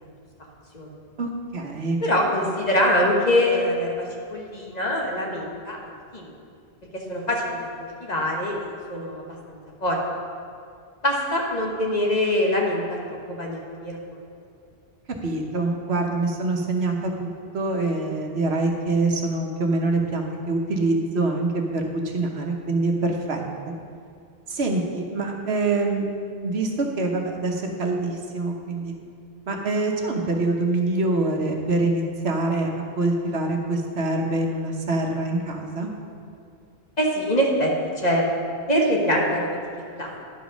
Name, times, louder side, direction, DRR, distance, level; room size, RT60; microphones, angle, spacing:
voice 1, 1.2-2.0 15.2-23.4 24.5-26.1 26.4-28.9 29.5-32.7 33.0-35.9, right 2 dB, 75° right, 2 dB, 1.3 m, -25 dB
voice 2, 2.0-4.0 4.3-5.8 6.1-6.3 6.9-9.2 9.5-10.0 11.0-13.0 13.3-14.0 37.0-37.7 38.0-38.2 38.7-39.6 40.0-40.1, left 1 dB, 40° left, -1 dB, 1.4 m, -24 dB
11.0 x 5.2 x 6.2 m, 2.3 s
omnidirectional pair, 1.1 m